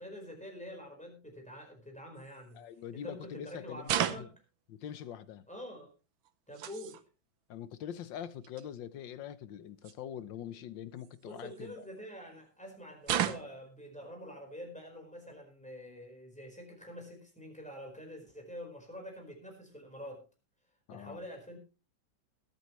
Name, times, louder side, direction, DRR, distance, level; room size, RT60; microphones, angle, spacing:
voice 1, 0.0-2.6 2.9-4.3 5.5-5.9 6.5-7.0 11.2-20.2 20.9-21.6, equal, 5° left, 4.5 m, -46 dB
sound 1, 2.2-2.4 3.8-4.4 6.2-7.0 8.1-8.2 8.4-8.7 9.8-9.9 11.0-11.9 13.0-13.7, right 11 dB, 85° right, 1.7 m, -34 dB
voice 2, 2.5-4.3 4.7-5.4 7.5-11.9 20.9-21.2, left 9 dB, 75° left, 1.6 m, -44 dB
21.5 x 8.9 x 3.1 m
omnidirectional pair, 2.1 m